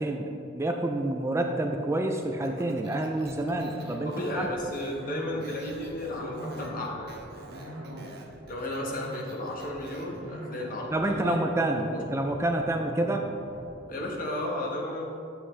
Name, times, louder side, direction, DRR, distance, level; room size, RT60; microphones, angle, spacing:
voice 1, 0.0-4.5 10.9-13.3, right 1 dB, 15° right, 3 dB, 0.4 m, -28 dB
Speech, 2.4-10.2, right 2 dB, 55° right, 1.0 m, -50 dB
sound 1, 3.2-14.1, equal, 90° right, 1.4 m, -42 dB
voice 2, 4.0-7.2 8.5-12.0 13.9-15.0, left 1 dB, 45° left, -1 dB, 1.2 m, -34 dB
8.2 x 7.7 x 3.2 m, 2.6 s
head